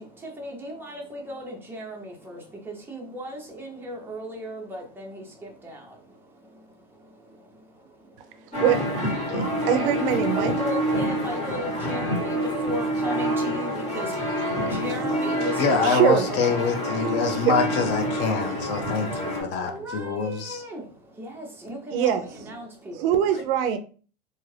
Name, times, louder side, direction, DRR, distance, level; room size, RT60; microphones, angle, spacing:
voice 1, 0.0-8.6 10.3-15.9 16.3-16.7 18.8-23.5, equal, 5° right, 0 dB, 0.6 m, -37 dB
sound 1, 8.5-19.4, equal, 20° left, 1.4 m, -27 dB
voice 2, 9.3-10.5 13.7-14.0 14.5-14.7 15.8-16.2 17.4-17.5 21.9-22.3 23.0-23.8, right 10 dB, 60° right, 9 dB, 0.5 m, -23 dB
voice 3, 15.6-20.6, left 4 dB, 35° left, 5 dB, 0.5 m, -25 dB
2.7 x 2.4 x 3.2 m, 0.39 s
supercardioid pair, 140°, 32 cm